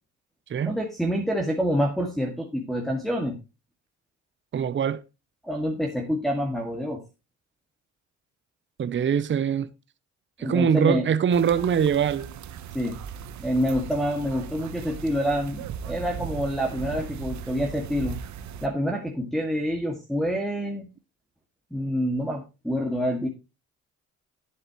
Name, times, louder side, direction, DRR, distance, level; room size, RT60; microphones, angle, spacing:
voice 1, 0.7-3.4 5.4-7.0 10.4-11.1 12.7-13.0 13.4-18.2 18.6-20.9 21.7-23.3, equal, ahead, 2.0 m, -27 dB
voice 2, 4.5-5.0 8.8-9.7 10.4-12.3, right 7 dB, 40° right, 0.7 m, -23 dB
sound 1, 11.3-18.7, right 7 dB, 70° right, 1.1 m, -38 dB
11.5 x 7.8 x 3.0 m
cardioid pair, 90°, 30 cm